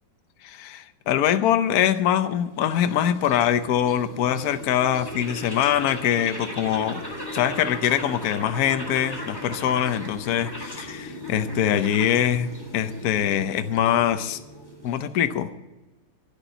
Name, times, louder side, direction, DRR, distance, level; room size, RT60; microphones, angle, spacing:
voice 1, 0.4-7.0 7.3-14.4 14.8-15.5, left 10 dB, 60° left, 10 dB, 1.0 m, -23 dB
sound 1, 2.0-15.4, left 1 dB, 10° left, 2.8 m, -38 dB
11.5 x 10.0 x 9.0 m, 1.1 s
omnidirectional pair, 2.4 m